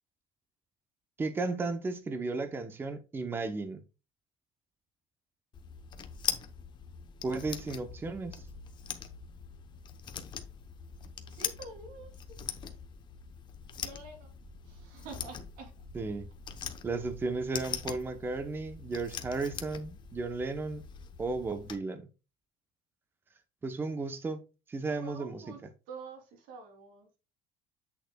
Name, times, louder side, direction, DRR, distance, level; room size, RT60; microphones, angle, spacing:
voice 1, 1.2-3.8 7.2-8.4 15.9-16.3 16.8-20.8 21.2-22.1 23.6-24.4 24.7-25.4, right 3 dB, 15° right, 0.7 m, -34 dB
sound 1, 5.5-21.8, left 7 dB, 30° left, 0.8 m, -42 dB
voice 2, 11.3-12.7 13.7-14.3 14.6-15.7 17.8-18.1 25.0-25.6 25.9-27.2, right 3 dB, 85° right, 2.8 m, -48 dB
8.3 x 6.5 x 2.2 m
cardioid pair, 170°, 15 cm